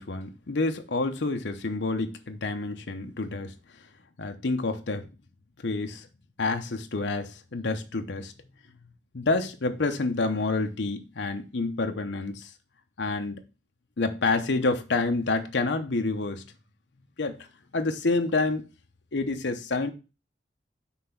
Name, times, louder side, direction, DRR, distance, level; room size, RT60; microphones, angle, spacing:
voice 1, 0.0-3.5 4.2-5.1 5.6-6.1 6.4-8.3 9.1-12.5 13.0-13.4 14.0-16.4 17.2-17.4 17.7-18.6 19.1-19.9, left 3 dB, 80° left, 0.8 m, -28 dB
5.8 x 3.4 x 5.7 m
head